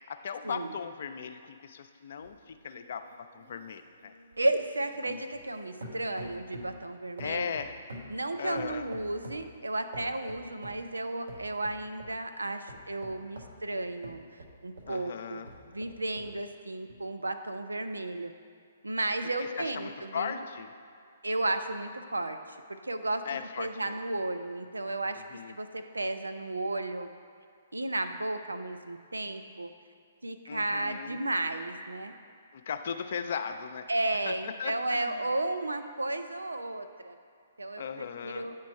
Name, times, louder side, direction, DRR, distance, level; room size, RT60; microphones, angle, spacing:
voice 1, 0.1-3.0 3.3-4.1 5.1-5.2 7.2-7.7 8.4-8.8 14.9-15.5 19.6-20.7 23.3-23.9 25.3-25.5 30.5-31.2 32.5-33.9 34.3-35.2 37.8-38.5, left 7 dB, 55° left, 8 dB, 0.4 m, -37 dB
sound 1, 2.2-5.5 5.8-6.8 7.2-9.5 9.9-10.9 11.3-12.2 12.7-15.0 15.4-16.4 16.9-17.0, equal, 70° right, 0.9 m, -47 dB
voice 2, 4.4-7.6 8.1-14.2 14.6-18.3 18.8-20.4 21.2-25.2 25.5-27.1 27.7-29.7 30.2-32.1 33.9-37.2 37.6-38.6, right 2 dB, 85° right, 8 dB, 0.4 m, -33 dB
8.4 x 3.0 x 4.6 m, 2.4 s
figure-of-eight pair, 125°, 0 cm